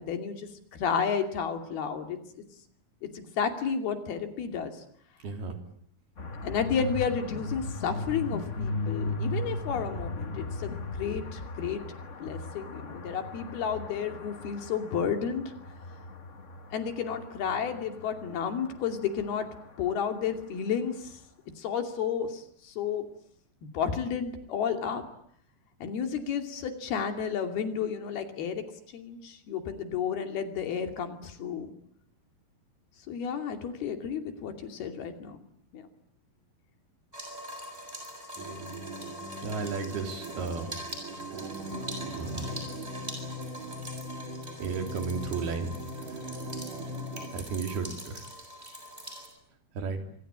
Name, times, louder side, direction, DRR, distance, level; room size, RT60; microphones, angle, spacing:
voice 1, 0.0-2.4 3.0-4.8 6.4-11.8 12.2-15.5 16.7-19.5 19.8-21.2 21.6-23.1 23.7-25.0 25.8-28.6 28.9-31.7 33.1-35.4 35.7-35.8, left 7 dB, 85° left, 6 dB, 4.6 m, -32 dB
voice 2, 5.2-5.6 39.4-40.7 42.1-42.6 44.6-45.7 47.3-48.2 49.8-50.1, right 5 dB, 85° right, 5 dB, 5.3 m, -33 dB
sound 1, 6.2-20.1, left 2 dB, 60° left, 0.7 m, -37 dB
sound 2, 37.1-49.3, equal, 10° right, 7.0 m, -43 dB
sound 3, 38.4-47.3, equal, 55° right, 6.8 m, -40 dB
27.0 x 25.0 x 8.8 m, 0.65 s
omnidirectional pair, 4.3 m